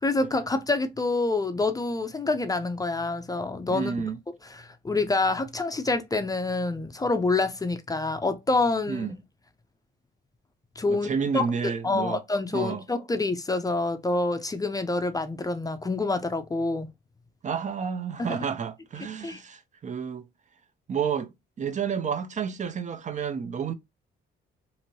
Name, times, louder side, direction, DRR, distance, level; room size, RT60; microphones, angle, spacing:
voice 1, 0.0-3.9 4.6-9.1 10.8-16.9 18.2-18.4 19.2-19.4, left 3 dB, 20° left, 0.4 m, -27 dB
voice 2, 3.7-4.2 8.9-9.2 10.9-12.2 12.5-12.9 17.4-20.3 20.9-23.7, right 6 dB, 40° right, 0.4 m, -30 dB
2.9 x 2.6 x 2.7 m
cardioid pair, 90°, 20 cm